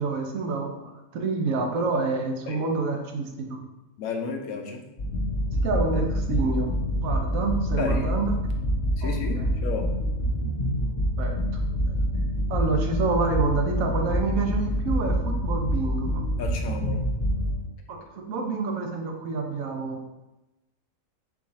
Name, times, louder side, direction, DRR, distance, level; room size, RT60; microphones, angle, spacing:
voice 1, 0.0-3.6 5.6-6.7 7.0-8.4 9.0-9.5 11.2-11.4 11.6-12.0 12.5-16.2 17.9-20.0, right 3 dB, 75° right, 2 dB, 1.1 m, -28 dB
voice 2, 4.0-4.8 7.8-8.3 9.0-9.8 16.4-17.0, left 5 dB, 85° left, 3 dB, 1.1 m, -32 dB
sound 1, 5.0-17.6, equal, 50° left, 0.9 m, -26 dB
4.6 x 2.4 x 4.0 m, 0.99 s
omnidirectional pair, 1.5 m